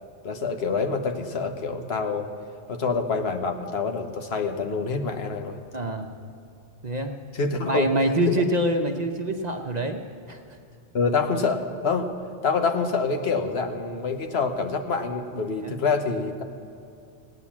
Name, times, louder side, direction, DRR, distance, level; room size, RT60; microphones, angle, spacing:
voice 1, 0.2-2.3 2.7-5.6 7.3-7.9 8.3-8.4 10.9-12.1 12.4-16.4, left 4 dB, 65° left, 6 dB, 1.2 m, -26 dB
voice 2, 5.7-6.1 6.8-7.1 7.6-10.0 10.3-10.4 15.6-15.8, right 1 dB, 40° right, 4 dB, 0.8 m, -25 dB
17.0 x 9.4 x 7.2 m, 2.6 s
omnidirectional pair, 1.2 m